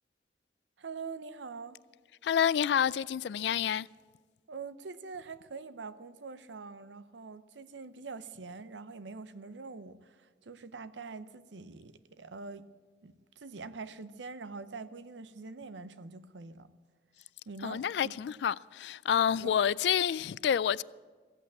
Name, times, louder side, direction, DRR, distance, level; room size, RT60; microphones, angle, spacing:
voice 1, 0.8-1.8 4.5-12.7 13.0-16.7 17.5-18.1 19.4-19.6, right 4 dB, 90° right, 0.7 m, -44 dB
voice 2, 2.2-3.9 17.6-20.8, left 8 dB, 70° left, 0.3 m, -28 dB
15.5 x 8.5 x 8.5 m
head